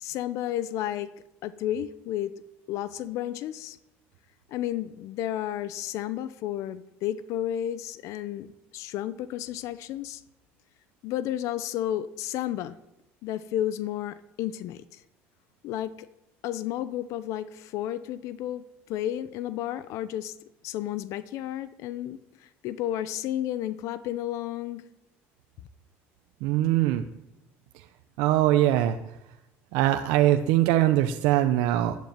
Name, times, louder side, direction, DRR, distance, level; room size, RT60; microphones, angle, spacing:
voice 1, 0.0-1.1 1.4-2.3 2.7-3.8 4.5-10.2 11.0-12.8 13.2-15.0 15.6-16.1 16.4-20.3 20.6-24.8, left 12 dB, 65° left, 15 dB, 0.9 m, -32 dB
voice 2, 26.4-27.0 27.7-27.8 28.2-29.0 29.7-31.9, right 13 dB, 75° right, 7 dB, 0.9 m, -22 dB
12.0 x 11.5 x 9.5 m, 0.91 s
supercardioid pair, 110°, 6 cm